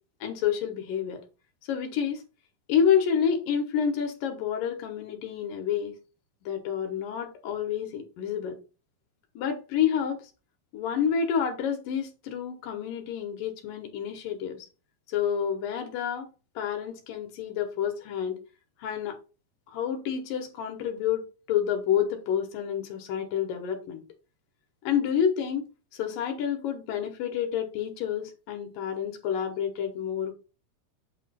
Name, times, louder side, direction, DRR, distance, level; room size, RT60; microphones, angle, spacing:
voice 1, 0.2-1.2 1.6-2.2 2.7-6.0 6.4-8.6 9.4-10.3 10.7-14.7 15.1-18.4 18.8-19.2 19.7-24.0 24.8-25.7 25.9-30.3, left 8 dB, 70° left, 2.6 m, -29 dB
8.5 x 3.1 x 5.5 m
omnidirectional pair, 4.5 m